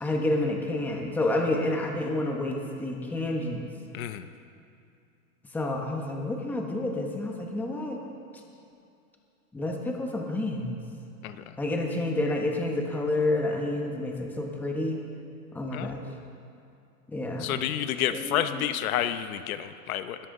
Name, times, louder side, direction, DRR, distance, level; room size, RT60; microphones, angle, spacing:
voice 1, 0.0-3.7 5.5-8.0 9.5-10.8 11.6-15.0 15.5-16.1 17.1-17.6 18.1-18.6, left 2 dB, 5° left, 1 dB, 0.9 m, -29 dB
voice 2, 3.9-4.3 11.2-11.5 15.7-15.9 17.4-20.2, left 11 dB, 65° left, 10 dB, 0.9 m, -30 dB
21.0 x 13.5 x 3.8 m, 2.5 s
supercardioid pair, 160°, 45 cm